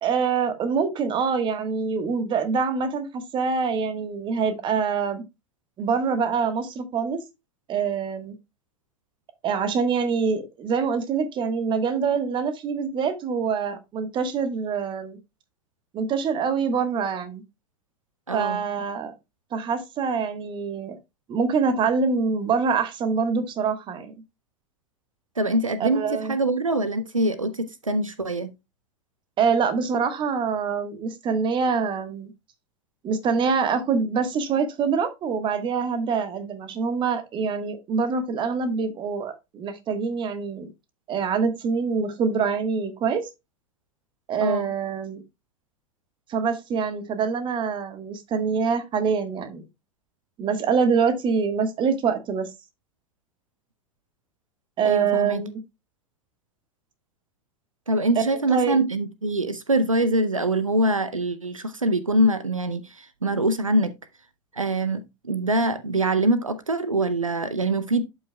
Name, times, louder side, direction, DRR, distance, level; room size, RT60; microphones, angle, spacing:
voice 1, 0.0-5.2 5.8-7.2 7.7-8.3 9.4-15.2 15.9-17.4 18.3-19.1 19.5-21.0 21.3-24.1 25.8-26.3 29.4-32.3 33.0-40.7 41.1-43.3 44.3-45.2 46.3-49.6 50.4-52.5 54.8-55.5 58.5-58.8, right 5 dB, 30° right, 1.3 m, -25 dB
voice 2, 18.3-18.6 25.4-28.5 44.4-44.7 54.8-55.4 57.9-63.9 64.5-68.0, right 1 dB, 85° right, 0.6 m, -24 dB
11.5 x 5.5 x 2.2 m
figure-of-eight pair, 85°, 17 cm